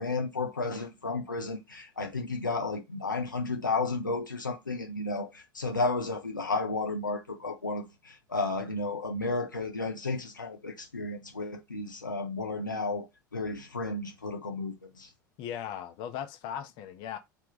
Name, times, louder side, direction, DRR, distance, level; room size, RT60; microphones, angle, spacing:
voice 1, 0.0-13.1 13.3-15.1, left 3 dB, 85° left, 0.7 m, -33 dB
voice 2, 15.4-17.2, left 9 dB, 50° left, 0.8 m, -38 dB
3.3 x 2.4 x 3.9 m
figure-of-eight pair, 75°, 10 cm